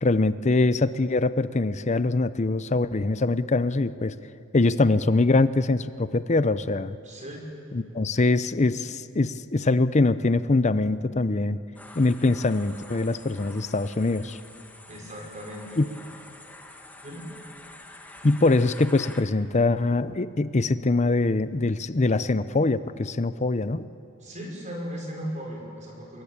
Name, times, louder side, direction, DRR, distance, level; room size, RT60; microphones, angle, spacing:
voice 1, 0.0-4.1 4.5-7.0 7.7-11.6 12.0-14.4 15.8-15.9 18.2-23.9, left 2 dB, 35° left, 14 dB, 0.6 m, -23 dB
voice 2, 7.0-7.4 14.9-15.8 17.0-17.3 24.2-26.2, equal, 35° right, 0 dB, 5.6 m, -37 dB
sound 1, 11.8-19.2, left 2 dB, 10° left, 1.8 m, -47 dB
25.5 x 22.0 x 8.8 m, 2.7 s
head